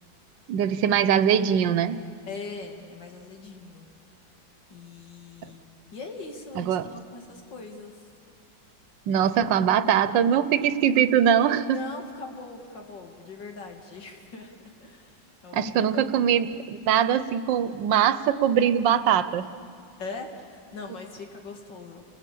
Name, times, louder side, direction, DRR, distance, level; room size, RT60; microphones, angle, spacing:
voice 1, 0.5-2.0 6.6-6.9 9.1-11.8 15.5-19.5, right 9 dB, 85° right, 14 dB, 1.5 m, -22 dB
voice 2, 2.3-3.9 4.7-8.1 11.7-16.5 20.0-22.0, left 4 dB, 80° left, 3 dB, 2.9 m, -41 dB
30.0 x 19.0 x 8.4 m, 2.3 s
omnidirectional pair, 1.9 m